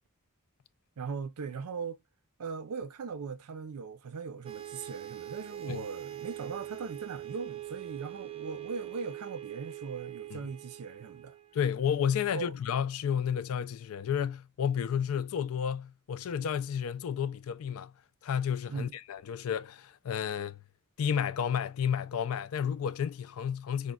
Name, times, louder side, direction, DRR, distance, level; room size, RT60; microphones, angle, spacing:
voice 1, 1.0-2.0 2.4-11.4 12.3-12.5 18.7-18.9, right 5 dB, 90° right, 0.5 m, -39 dB
sound 1, 4.4-12.2, right 13 dB, 25° right, 0.3 m, -43 dB
voice 2, 11.5-17.9 18.2-20.6 21.0-23.9, left 8 dB, 65° left, 0.4 m, -31 dB
5.1 x 2.1 x 2.2 m
head